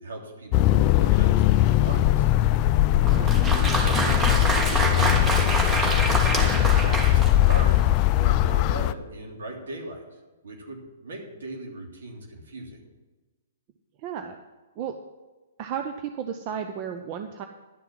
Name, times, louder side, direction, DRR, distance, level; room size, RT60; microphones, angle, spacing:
voice 1, 0.0-0.5 0.8-2.3 3.2-12.8, right 2 dB, 70° right, 0 dB, 3.1 m, -39 dB
sound 1, 0.5-8.9, left 14 dB, 35° left, 0.4 m, -20 dB
voice 2, 2.9-3.3 14.0-14.4 14.8-15.0 15.6-17.5, right 8 dB, 40° right, 7 dB, 0.7 m, -33 dB
Applause, 3.0-7.9, right 2 dB, 15° right, 1.6 m, -26 dB
11.0 x 6.8 x 7.5 m, 1.2 s
hypercardioid pair, 120°, 0 cm